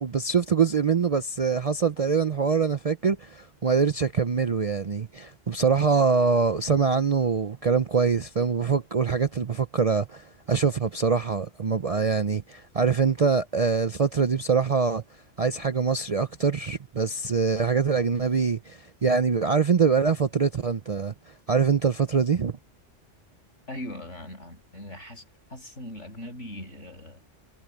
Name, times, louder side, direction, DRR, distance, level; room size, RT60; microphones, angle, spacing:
voice 1, 0.0-15.0 15.4-21.1 21.5-22.6, right 5 dB, 40° right, 0.5 m, -24 dB
voice 2, 23.7-25.2 25.5-27.3, left 1 dB, 75° left, 8.3 m, -40 dB
omnidirectional pair, 1.3 m